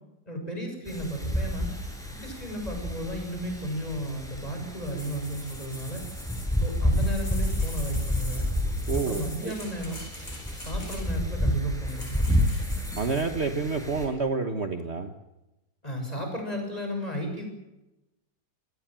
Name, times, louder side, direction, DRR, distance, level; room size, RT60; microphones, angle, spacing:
voice 1, 0.3-1.7 2.1-6.0 6.6-8.5 9.0-10.2 10.5-12.5 15.8-17.5, equal, 20° left, 3 dB, 7.0 m, -34 dB
Wind, 0.9-14.1, equal, ahead, 6.5 m, -30 dB
sound 1, 4.8-11.3 11.9-13.4, left 1 dB, 50° left, 7.9 m, -44 dB
voice 2, 8.9-9.5 13.0-15.1, right 4 dB, 40° right, 6 dB, 1.6 m, -29 dB
26.0 x 18.5 x 7.7 m, 0.97 s
omnidirectional pair, 1.8 m